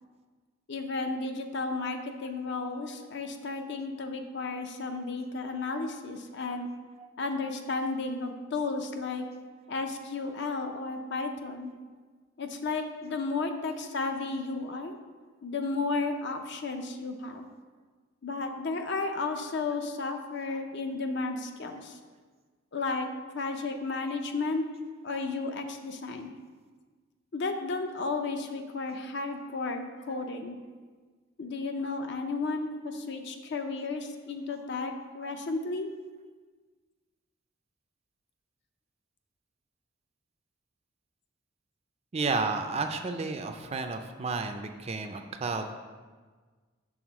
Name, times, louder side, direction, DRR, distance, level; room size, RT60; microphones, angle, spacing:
voice 1, 0.7-6.7 7.2-9.2 9.7-11.7 12.4-14.9 15.4-17.5 18.2-22.0 22.7-24.6 25.0-26.3 27.3-30.6 31.4-35.9, left 3 dB, 60° left, 5 dB, 0.6 m, -33 dB
voice 2, 42.1-45.7, right 4 dB, 30° right, 6 dB, 0.4 m, -32 dB
6.3 x 3.6 x 6.1 m, 1.4 s
head